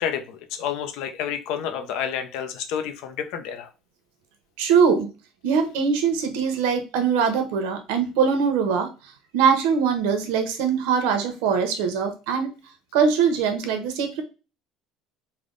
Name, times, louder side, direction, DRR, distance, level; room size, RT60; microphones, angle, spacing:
voice 1, 0.0-3.7, left 8 dB, 65° left, 7 dB, 0.5 m, -29 dB
voice 2, 4.6-5.1 5.4-8.9 9.3-12.5 12.9-14.2, right 6 dB, 85° right, 6 dB, 0.8 m, -22 dB
3.3 x 2.1 x 3.7 m, 0.31 s
cardioid pair, 165°, 0 cm